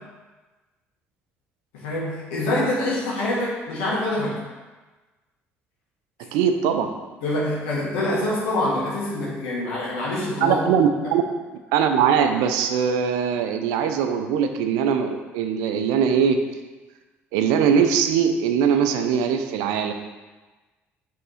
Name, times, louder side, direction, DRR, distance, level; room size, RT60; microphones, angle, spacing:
voice 1, 1.7-4.3 7.2-10.6, left 1 dB, 80° left, -6 dB, 1.7 m, -25 dB
voice 2, 6.3-6.9 10.4-11.2 11.7-16.4 17.3-19.9, right 7 dB, 75° right, 7 dB, 0.5 m, -21 dB
5.4 x 3.6 x 5.6 m, 1.2 s
hypercardioid pair, 55°, 6 cm